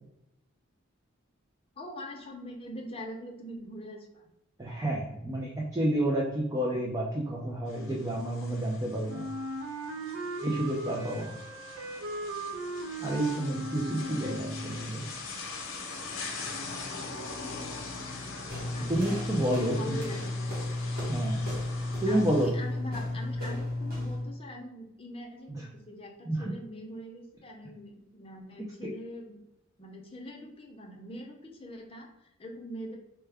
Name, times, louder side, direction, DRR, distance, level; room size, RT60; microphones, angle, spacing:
voice 1, 1.7-4.3 13.9-14.4 18.7-18.9 19.5-20.5 22.1-29.4 29.8-33.0, equal, 25° left, 1 dB, 0.7 m, -43 dB
voice 2, 4.6-9.3 10.4-11.3 13.0-15.0 18.9-20.0 21.1-21.4 22.0-22.5 25.5-25.6 26.3-26.5, right 1 dB, 15° right, -3 dB, 0.5 m, -30 dB
sound 1, 7.7-22.5, left 3 dB, 70° left, 0.8 m, -42 dB
Wind instrument woodwind instrument, 9.0-14.9, right 1 dB, 70° right, 0.5 m, -38 dB
sound 2, 18.5-24.3, left 1 dB, 45° right, 1.4 m, -33 dB
4.5 x 2.2 x 3.4 m, 0.84 s
head